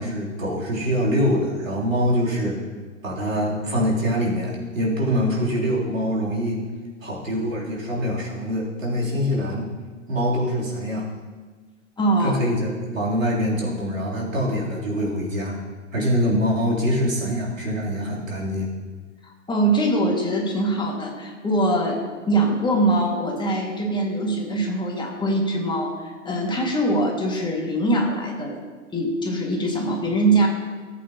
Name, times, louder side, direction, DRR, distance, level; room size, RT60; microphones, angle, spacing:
voice 1, 0.0-2.6 3.0-6.6 7.0-9.7 10.1-11.0 12.2-15.6 15.9-18.7, equal, 80° right, -5 dB, 3.4 m, -24 dB
voice 2, 12.0-12.4 19.2-28.6 28.9-30.5, right 1 dB, 10° left, 0 dB, 2.0 m, -23 dB
18.0 x 8.3 x 2.9 m, 1.4 s
figure-of-eight pair, 105°, 38 cm